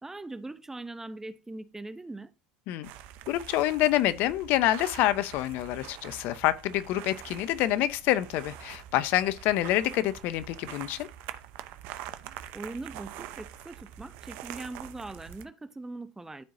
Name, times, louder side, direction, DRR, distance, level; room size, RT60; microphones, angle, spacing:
voice 1, 0.0-2.3 12.5-16.4, right 2 dB, 10° right, 0.8 m, -41 dB
sound 1, 2.8-15.5, right 11 dB, 60° right, 0.8 m, -45 dB
voice 2, 3.3-11.1, left 14 dB, 60° left, 0.7 m, -27 dB
13.0 x 4.7 x 2.7 m
hypercardioid pair, 80°, 4 cm